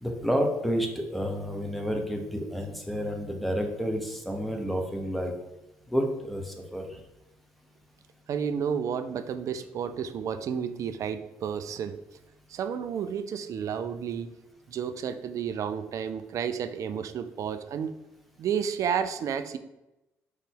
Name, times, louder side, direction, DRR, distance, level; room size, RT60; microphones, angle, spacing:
voice 1, 0.0-5.3 5.9-6.8, equal, ahead, 3 dB, 1.1 m, -30 dB
voice 2, 8.3-12.0 12.5-14.3 14.7-17.9 18.4-19.6, right 7 dB, 55° right, 10 dB, 0.4 m, -31 dB
3.9 x 3.1 x 3.8 m, 0.96 s
hypercardioid pair, 50°, 7 cm